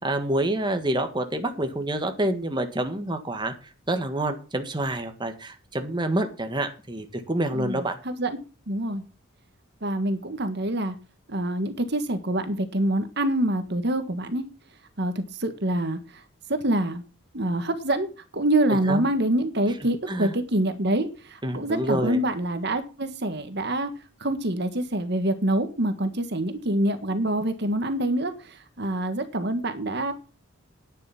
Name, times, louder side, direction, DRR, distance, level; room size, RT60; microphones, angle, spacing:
voice 1, 0.0-8.0 18.9-19.0 20.1-20.3 21.4-22.2, right 1 dB, 20° right, 6 dB, 1.7 m, -27 dB
voice 2, 7.5-8.4 8.7-9.0 9.8-10.9 11.3-14.4 15.0-16.0 16.5-17.0 17.3-18.1 18.3-23.9 24.2-30.1, right 1 dB, 55° right, 9 dB, 1.6 m, -26 dB
10.5 x 10.0 x 5.9 m, 0.34 s
head